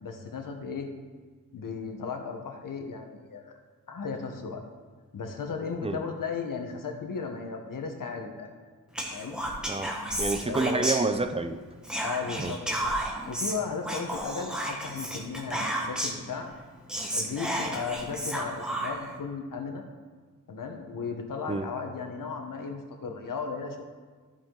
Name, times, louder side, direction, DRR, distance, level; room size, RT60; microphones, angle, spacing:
voice 1, 0.0-0.9 1.5-3.6 3.9-4.6 5.1-8.5 9.1-9.4 10.4-10.9 12.0-12.9 13.3-16.5 17.1-19.8 20.5-23.8, left 5 dB, 75° left, 4 dB, 1.2 m, -35 dB
Whispering, 8.9-11.5 11.8-16.3 16.6-16.7 16.9-19.1, right 1 dB, ahead, 1.2 m, -32 dB
voice 2, 9.7-11.6 12.4-12.5 21.5-21.7, right 3 dB, 20° right, 8 dB, 0.5 m, -29 dB
13.5 x 5.0 x 3.8 m, 1.5 s
wide cardioid pair, 140°, 33 cm